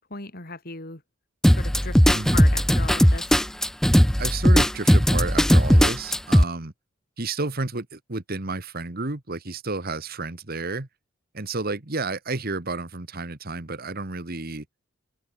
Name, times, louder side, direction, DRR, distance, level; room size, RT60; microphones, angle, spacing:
voice 1, 0.1-1.0 1.5-3.3, left 3 dB, 45° left, 3.1 m, -37 dB
sound 1, 1.4-6.4, equal, ahead, 0.5 m, -18 dB
voice 2, 4.2-6.7 7.2-10.9 11.3-14.7, right 3 dB, 45° right, 1.6 m, -31 dB
head